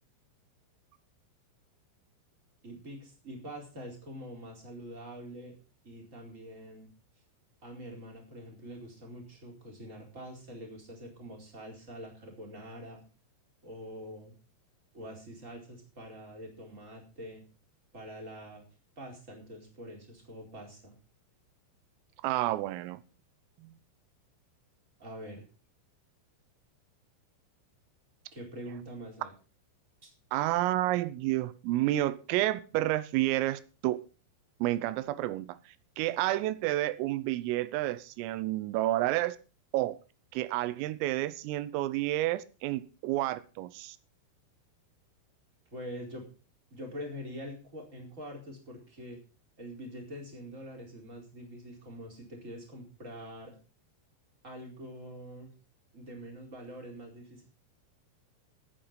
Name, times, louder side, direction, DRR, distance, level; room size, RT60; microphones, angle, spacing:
voice 1, 2.6-5.5 5.8-6.9 7.6-13.0 13.6-14.3 14.9-17.4 17.9-18.6 19.0-20.9 25.0-25.4 28.3-29.3 30.0-30.1 45.7-46.3 46.7-49.2 49.6-53.5 54.4-55.5 55.9-57.4, equal, 15° right, 4.0 m, -45 dB
voice 2, 22.2-23.0 23.6-23.8 30.3-34.0 34.6-35.6 36.0-39.4 39.7-40.0 40.3-44.0, right 16 dB, 90° right, 3.5 m, -30 dB
14.0 x 9.2 x 5.7 m
omnidirectional pair, 5.8 m